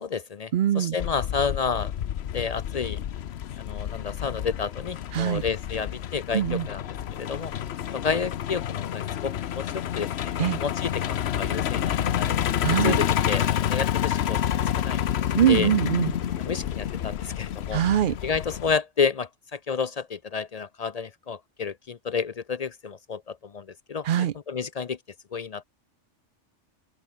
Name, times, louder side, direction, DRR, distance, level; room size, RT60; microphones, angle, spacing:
voice 1, 0.0-1.9 2.3-3.0 3.6-6.8 7.2-7.5 7.9-12.4 12.7-14.4 14.8-15.1 15.5-15.7 16.4-17.8 18.2-25.0 25.3-25.6, left 5 dB, 50° left, 0.5 m, -30 dB
voice 2, 0.5-1.0 5.1-5.4 6.3-6.7 10.4-10.6 12.6-13.0 15.4-16.1 17.7-18.2 24.0-24.3, right 10 dB, 60° right, 0.6 m, -23 dB
Truck, 1.0-18.8, left 10 dB, 65° left, 0.9 m, -29 dB
sound 1, 14.7-17.9, left 6 dB, 80° left, 1.9 m, -41 dB
open air
omnidirectional pair, 1.3 m